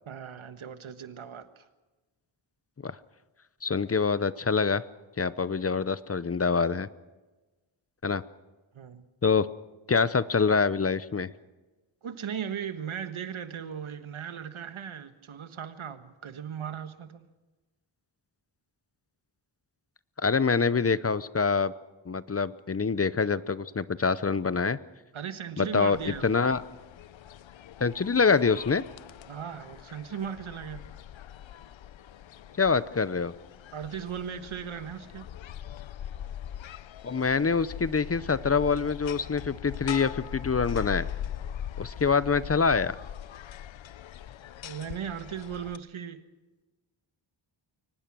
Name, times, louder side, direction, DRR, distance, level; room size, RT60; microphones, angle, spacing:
voice 1, 0.1-1.6 8.7-9.1 12.0-17.3 25.1-26.4 29.3-30.8 33.7-35.3 44.6-46.2, right 8 dB, 75° right, 10 dB, 1.4 m, -37 dB
voice 2, 3.6-4.8 5.2-6.9 8.0-8.2 9.2-9.5 9.9-11.3 20.2-21.7 22.1-24.8 25.6-26.6 27.8-28.8 32.6-33.3 37.0-41.1 41.8-43.0, left 5 dB, 30° left, 16 dB, 0.7 m, -25 dB
sound 1, 25.9-45.8, left 10 dB, 65° left, 0.7 m, -41 dB
23.0 x 19.5 x 6.1 m, 1.2 s
wide cardioid pair, 95°, 49 cm